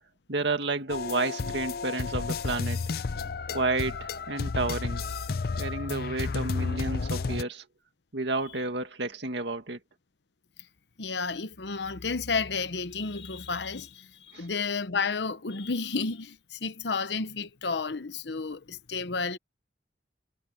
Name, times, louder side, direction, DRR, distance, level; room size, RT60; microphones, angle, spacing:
voice 1, 0.3-2.8 3.5-5.0 5.6-7.6 8.1-9.8 14.3-14.5, right 3 dB, 75° right, 2.0 m, -31 dB
sound 1, 0.9-7.4, left 4 dB, 55° left, 0.5 m, -32 dB
voice 2, 11.0-19.4, left 4 dB, 75° left, 0.9 m, -31 dB
head